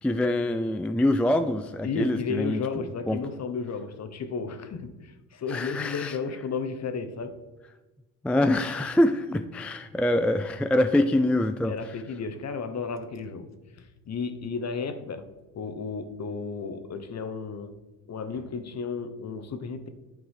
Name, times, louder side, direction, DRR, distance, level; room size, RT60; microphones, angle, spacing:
voice 1, 0.0-2.6 3.1-3.2 5.5-6.2 8.2-11.8, left 1 dB, 5° left, 9 dB, 0.3 m, -24 dB
voice 2, 1.8-7.4 11.6-13.5 13.7-15.3 15.5-17.7 18.1-19.9, left 5 dB, 45° left, 10 dB, 1.0 m, -33 dB
9.2 x 3.9 x 4.8 m, 1.1 s
supercardioid pair, 80°, 38 cm